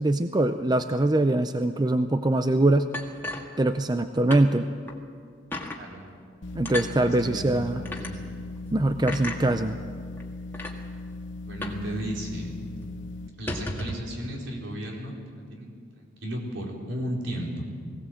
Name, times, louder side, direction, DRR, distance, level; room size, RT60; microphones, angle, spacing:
voice 1, 0.0-2.9 3.6-4.7 6.5-7.8 8.7-9.8, right 2 dB, 20° right, 9 dB, 0.5 m, -23 dB
sound 1, 2.9-4.0 4.3-4.5 4.9-5.0 5.5-5.8 6.6-6.9 7.8-8.1 9.1-9.4 10.2-10.3 10.5-10.8 11.6-11.9 12.1-12.2 12.6-12.8 13.3-14.1, left 1 dB, 10° left, 1.7 m, -34 dB
sound 2, 6.4-13.3, left 2 dB, 70° left, 0.9 m, -38 dB
voice 2, 7.0-8.2 11.4-12.5 13.4-17.7, equal, 75° right, -1 dB, 4.3 m, -35 dB
20.5 x 17.0 x 7.7 m, 2.1 s
head